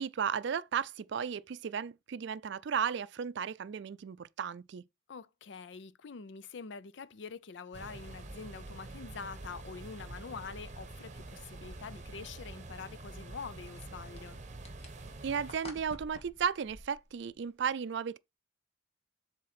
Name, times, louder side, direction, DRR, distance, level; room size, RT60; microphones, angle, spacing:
voice 1, 0.0-4.8 15.2-18.2, right 7 dB, 65° right, 0.4 m, -34 dB
voice 2, 5.1-14.4, left 5 dB, 65° left, 0.5 m, -45 dB
sound 1, 7.7-15.6, right 2 dB, 40° right, 1.0 m, -46 dB
sound 2, 8.1-8.2 8.9-9.0 9.5-9.6 11.2-11.3 13.4-17.6, left 1 dB, 35° left, 1.7 m, -52 dB
7.6 x 4.0 x 4.1 m
head